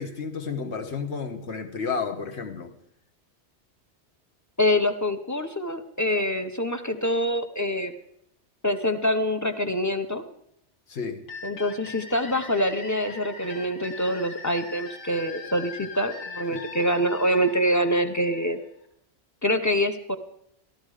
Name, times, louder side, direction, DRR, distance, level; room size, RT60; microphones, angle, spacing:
voice 1, 0.0-2.7 10.9-11.2 16.5-16.6, left 5 dB, 70° left, 1.4 m, -31 dB
voice 2, 4.6-7.9 8.6-10.2 11.4-18.6 19.4-20.2, equal, 15° left, 0.8 m, -25 dB
sound 1, 11.3-18.9, left 5 dB, 85° left, 1.9 m, -41 dB
14.5 x 12.5 x 4.9 m
omnidirectional pair, 1.2 m